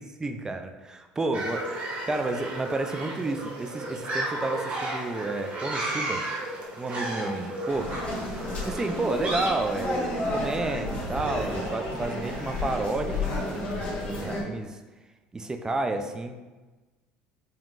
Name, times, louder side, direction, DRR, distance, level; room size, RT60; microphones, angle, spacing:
voice 1, 0.0-6.2 6.8-8.0 8.6-14.8 15.3-16.3, right 2 dB, 20° right, 6 dB, 0.4 m, -31 dB
sound 1, 1.3-9.5, right 1 dB, 40° right, 1.1 m, -33 dB
Cheering / Applause, 6.6-14.3, right 2 dB, 80° right, 0.9 m, -44 dB
sound 2, 7.7-14.4, left 2 dB, 45° left, 1.2 m, -32 dB
5.3 x 2.9 x 2.5 m, 1.2 s
supercardioid pair, 90°, 3 cm